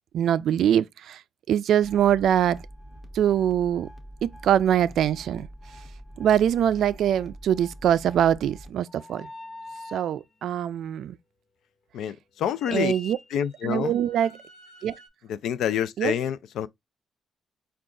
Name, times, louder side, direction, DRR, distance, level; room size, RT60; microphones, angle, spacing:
voice 1, 0.1-1.2 1.5-2.6 3.1-3.9 4.2-5.5 6.2-9.3 9.9-11.2 12.7-13.2 13.6-14.3 14.8-15.0 16.0-16.1, right 10 dB, 70° right, 0.3 m, -23 dB
sound 1, 1.8-8.7, equal, 15° left, 0.7 m, -45 dB
sound 2, 8.9-10.2 12.6-15.1, left 2 dB, 60° left, 1.0 m, -45 dB
voice 2, 11.9-12.9 13.3-13.9 15.3-16.7, left 9 dB, 85° left, 0.4 m, -27 dB
4.7 x 2.4 x 3.7 m
cardioid pair, 155°, 0 cm